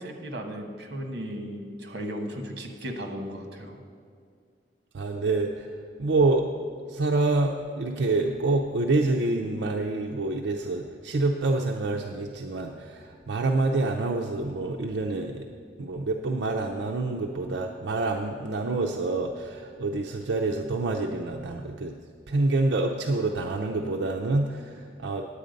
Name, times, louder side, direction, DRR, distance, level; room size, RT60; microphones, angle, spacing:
voice 1, 0.0-3.8, equal, 65° right, 3 dB, 1.3 m, -36 dB
voice 2, 4.9-5.7 6.0-6.5 6.9-15.5 15.8-21.9 22.3-25.2, right 2 dB, 85° right, 1 dB, 0.6 m, -27 dB
9.9 x 8.4 x 5.2 m, 2.2 s
head